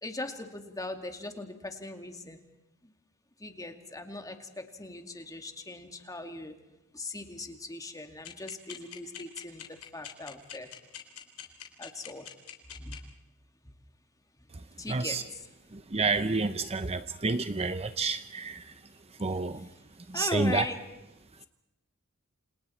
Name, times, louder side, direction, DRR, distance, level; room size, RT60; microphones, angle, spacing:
voice 1, 0.0-2.4 3.4-6.5 6.9-10.7 11.8-12.3 12.8-13.0 14.8-15.5 19.8-19.9 20.1-20.8, left 2 dB, 15° left, 5 dB, 2.4 m, -39 dB
sound 1, 8.2-12.9, left 10 dB, 80° left, 3.7 m, -42 dB
voice 2, 14.9-15.2 15.9-18.6 19.2-19.6 20.1-20.6, right 3 dB, 30° right, 11 dB, 0.8 m, -29 dB
29.5 x 27.0 x 4.5 m, 0.94 s
head